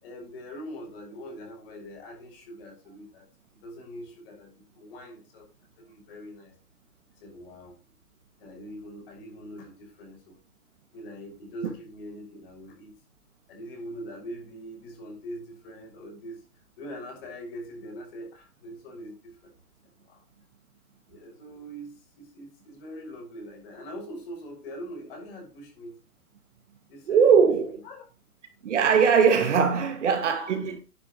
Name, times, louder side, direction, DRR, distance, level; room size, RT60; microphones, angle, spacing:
voice 1, 0.0-3.3 3.5-5.5 5.8-6.6 7.2-7.8 8.4-10.4 10.9-13.0 13.5-16.4 16.8-19.5 20.0-20.2 21.1-26.0 26.9-27.4 27.6-28.0, equal, 35° left, 6.1 m, -42 dB
voice 2, 27.1-27.7 28.6-30.8, right 6 dB, 50° right, 2.4 m, -20 dB
11.5 x 10.0 x 3.1 m
hypercardioid pair, 155°, 46 cm